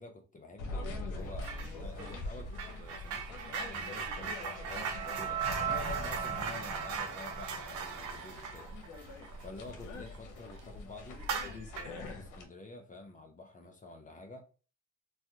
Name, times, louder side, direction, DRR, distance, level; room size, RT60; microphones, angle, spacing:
voice 1, 0.0-4.4 5.0-8.7 9.4-11.2 11.8-14.4, left 2 dB, 25° left, 0.7 m, -49 dB
sound 1, 0.6-12.5, left 2 dB, 80° left, 0.8 m, -44 dB
sound 2, 1.4-1.7 2.0-10.2 10.5-10.7 11.2-12.0, right 5 dB, 80° right, 0.7 m, -40 dB
sound 3, 3.6-8.7, right 7 dB, 55° right, 1.3 m, -39 dB
3.2 x 2.2 x 2.7 m
cardioid pair, 90°, 30 cm